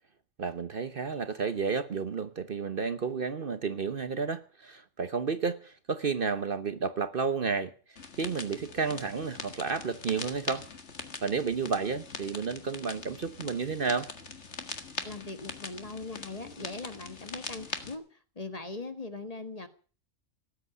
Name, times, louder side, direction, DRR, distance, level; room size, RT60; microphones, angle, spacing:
voice 1, 0.4-7.7 8.2-10.6 11.2-14.1, right 5 dB, 45° right, 1.0 m, -31 dB
sound 1, 8.0-18.0, left 4 dB, 60° left, 2.0 m, -42 dB
voice 2, 15.0-18.0 18.4-19.7, left 3 dB, 30° left, 1.6 m, -40 dB
18.0 x 8.1 x 9.6 m
omnidirectional pair, 1.3 m